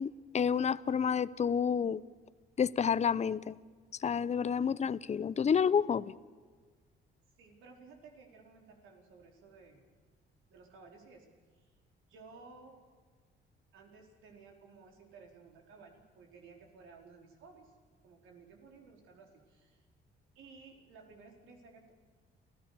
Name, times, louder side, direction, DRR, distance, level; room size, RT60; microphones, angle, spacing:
voice 1, 0.0-2.0 2.6-3.6 4.0-6.1, left 7 dB, 35° left, 17 dB, 0.7 m, -29 dB
voice 2, 7.4-9.9 10.5-11.3 11.5-11.8 12.1-12.8 13.7-17.7 18.0-19.9 20.3-21.9, right 4 dB, 90° right, 2 dB, 4.5 m, -56 dB
28.5 x 16.0 x 6.9 m, 1.5 s
cardioid pair, 90°, 20 cm